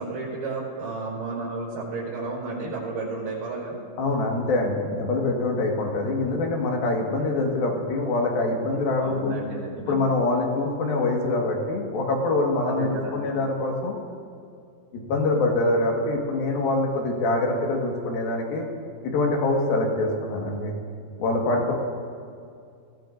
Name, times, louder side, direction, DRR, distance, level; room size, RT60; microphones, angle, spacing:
voice 1, 0.0-3.8 9.0-10.0 12.7-13.4, right 3 dB, 85° right, -5 dB, 6.5 m, -32 dB
voice 2, 4.0-9.3 9.9-13.9 14.9-18.7 19.0-20.7 21.2-21.7, left 2 dB, 70° left, 0 dB, 3.4 m, -24 dB
23.5 x 16.0 x 2.6 m, 2.3 s
omnidirectional pair, 4.5 m